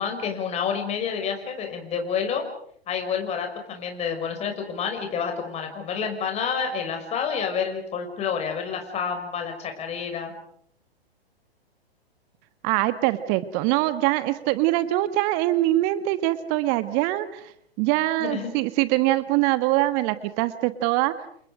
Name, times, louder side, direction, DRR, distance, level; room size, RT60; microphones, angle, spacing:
voice 1, 0.0-2.4 2.9-10.3 18.2-18.5, left 6 dB, 20° left, 4 dB, 5.9 m, -29 dB
voice 2, 12.6-17.4 17.8-21.1, right 16 dB, 30° right, 12 dB, 1.6 m, -23 dB
30.0 x 28.5 x 5.0 m, 0.64 s
figure-of-eight pair, 115°, 31 cm